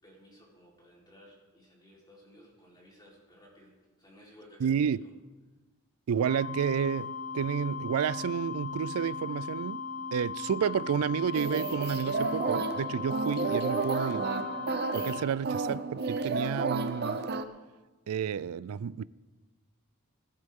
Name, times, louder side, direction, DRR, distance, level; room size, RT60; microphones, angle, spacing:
voice 1, 0.0-4.9 15.3-15.6, equal, 20° left, 3.8 m, -57 dB
voice 2, 4.6-5.0 6.1-9.8 10.1-14.3 14.9-17.2 18.1-19.0, right 7 dB, 75° right, 0.4 m, -30 dB
sound 1, 6.2-15.2, left 5 dB, 65° left, 1.7 m, -38 dB
sound 2, 11.3-17.4, right 3 dB, 45° right, 0.7 m, -32 dB
20.0 x 11.5 x 3.7 m
head